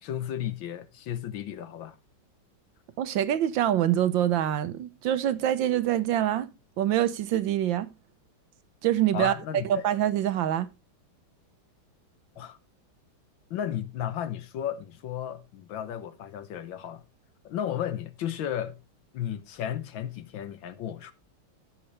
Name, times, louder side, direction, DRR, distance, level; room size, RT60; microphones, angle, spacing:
voice 1, 0.0-2.0 9.1-9.8 12.3-12.6 13.5-17.0 17.4-18.8 19.1-21.1, left 10 dB, 70° left, 1.6 m, -34 dB
voice 2, 3.0-7.9 8.8-9.3 9.7-10.7, right 11 dB, 70° right, 1.4 m, -25 dB
15.5 x 6.1 x 3.2 m
omnidirectional pair, 2.3 m